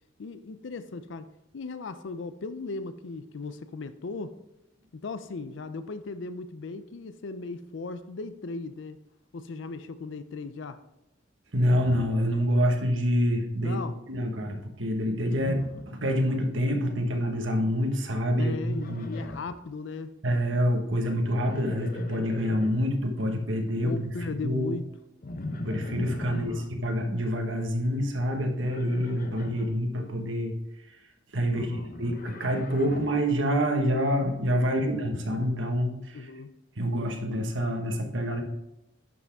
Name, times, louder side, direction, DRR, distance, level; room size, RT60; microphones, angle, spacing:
voice 1, 0.2-4.4 5.0-9.0 9.3-10.8 13.6-14.0 18.4-20.2 23.8-24.8 26.3-26.7 31.5-31.9 34.8-35.1 36.1-36.5, left 3 dB, 70° left, 0.5 m, -37 dB
voice 2, 11.5-13.8 14.1-19.1 20.2-24.8 25.5-30.5 31.3-31.7 32.0-36.3 36.8-38.4, equal, 75° right, 1.4 m, -27 dB
Livestock farm animals working animals, 15.2-16.5 16.8-17.3 18.6-19.6 21.2-22.9 25.2-26.6 28.6-29.7 31.5-33.2, left 2 dB, 50° left, 0.9 m, -40 dB
10.5 x 6.1 x 3.5 m
head